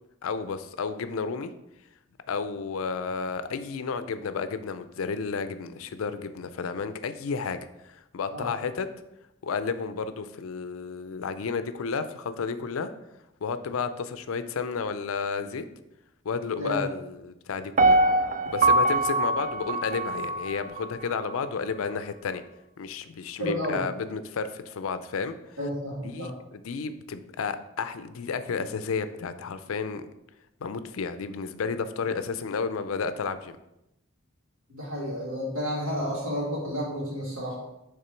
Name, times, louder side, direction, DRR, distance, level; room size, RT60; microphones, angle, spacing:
voice 1, 0.2-1.5 2.3-7.6 7.9-8.9 9.4-12.9 13.4-15.6 16.2-18.0 18.5-22.4 22.8-25.3 26.0-30.1 30.6-33.6, left 5 dB, 80° left, 11 dB, 0.4 m, -32 dB
Piano, 17.8-20.8 21.3-21.4, right 2 dB, 40° right, 0.3 m, -23 dB
voice 2, 23.4-23.8 25.6-26.3 34.7-37.6, equal, 75° right, -4 dB, 2.4 m, -31 dB
6.7 x 3.5 x 4.4 m, 0.89 s
head